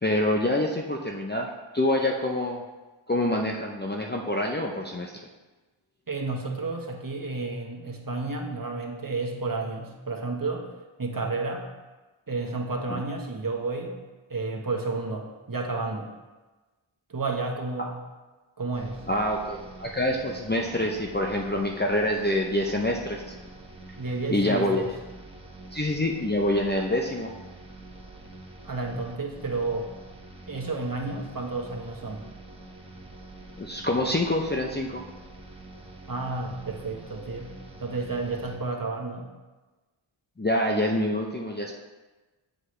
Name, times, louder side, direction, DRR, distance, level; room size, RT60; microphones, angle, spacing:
voice 1, 0.0-2.6 3.1-5.2 12.9-13.0 19.1-23.3 24.3-24.9 25.7-27.3 33.6-35.0 40.4-41.8, left 1 dB, 20° left, 0 dB, 0.6 m, -26 dB
voice 2, 6.1-10.7 11.0-11.7 12.3-14.0 14.3-16.1 17.1-18.0 18.6-19.0 24.0-24.9 28.6-29.9 30.5-32.2 36.1-39.3, right 3 dB, 45° right, 1 dB, 1.2 m, -31 dB
sound 1, 18.7-38.6, right 2 dB, 10° right, 1.3 m, -46 dB
7.8 x 6.5 x 3.2 m, 1.2 s
wide cardioid pair, 50°, 48 cm